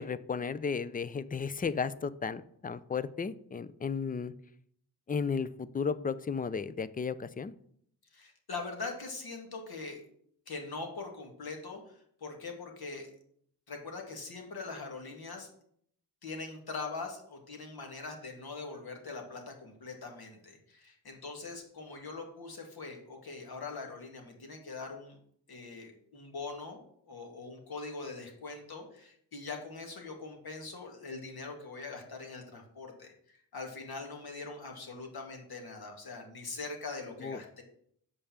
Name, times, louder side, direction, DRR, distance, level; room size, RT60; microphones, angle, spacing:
voice 1, 0.0-4.3 5.1-7.5 37.2-37.4, left 5 dB, 20° left, 16 dB, 0.4 m, -34 dB
voice 2, 8.1-10.0 10.5-13.1 13.7-15.5 16.2-25.2 25.5-37.6, left 3 dB, 60° left, 2 dB, 2.3 m, -42 dB
6.8 x 5.3 x 7.2 m, 0.66 s
cardioid pair, 80°, 41 cm